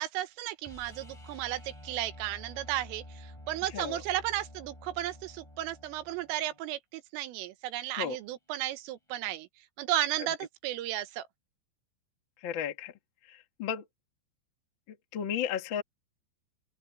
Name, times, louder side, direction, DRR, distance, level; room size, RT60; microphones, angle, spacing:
voice 1, 0.0-9.5 9.8-11.3, right 14 dB, 90° right, 3.8 m, -34 dB
sound 1, 0.6-6.6 9.1-9.2, left 1 dB, 5° left, 5.8 m, -49 dB
voice 2, 12.4-12.9 13.3-13.8 14.9-15.8, left 9 dB, 75° left, 1.1 m, -34 dB
open air
omnidirectional pair, 5.7 m